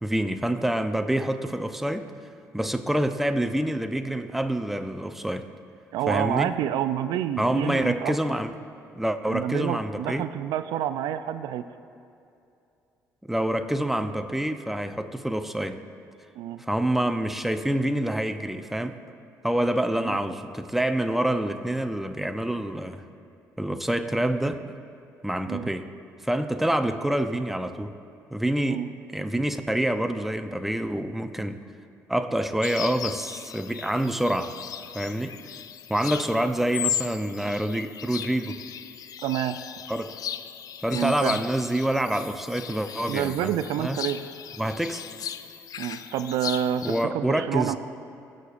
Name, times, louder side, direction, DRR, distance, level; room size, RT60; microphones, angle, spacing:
voice 1, 0.0-2.1 2.5-5.5 6.1-6.5 7.4-8.5 9.0-10.3 13.3-15.8 16.6-19.0 19.4-23.0 23.6-24.7 25.2-25.9 26.2-27.9 28.3-28.8 29.1-31.6 32.1-34.5 34.9-35.4 35.9-38.6 39.9-40.1 40.8-43.5 43.8-44.0 44.6-45.0 46.8-47.8, right 1 dB, 5° right, 8 dB, 0.6 m, -27 dB
voice 2, 5.9-8.1 9.3-11.7 16.4-16.6 19.9-20.2 25.5-25.7 28.7-28.9 39.2-39.6 40.9-41.4 43.1-44.2 45.8-47.8, right 10 dB, 80° right, 12 dB, 0.4 m, -28 dB
sound 1, 32.6-47.0, left 9 dB, 60° left, 0.4 m, -37 dB
18.5 x 6.5 x 2.5 m, 2.6 s
supercardioid pair, 70°, 7 cm